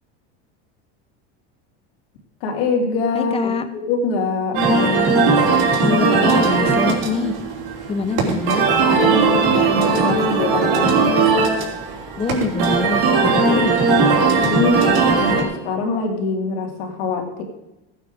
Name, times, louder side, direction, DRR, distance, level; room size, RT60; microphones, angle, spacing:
voice 1, 2.4-4.6 8.8-11.1 13.2-13.7 14.2-14.9 15.2-17.4, left 3 dB, 75° left, 2 dB, 2.8 m, -24 dB
voice 2, 3.1-3.7 4.5-5.2 5.8-7.3 7.9-8.7 12.2-13.7, left 4 dB, 20° left, 9 dB, 0.9 m, -24 dB
sound 1, 4.6-15.4, right 4 dB, 70° right, 3.1 m, -18 dB
15.0 x 8.8 x 4.9 m, 0.93 s
supercardioid pair, 150°, 30 cm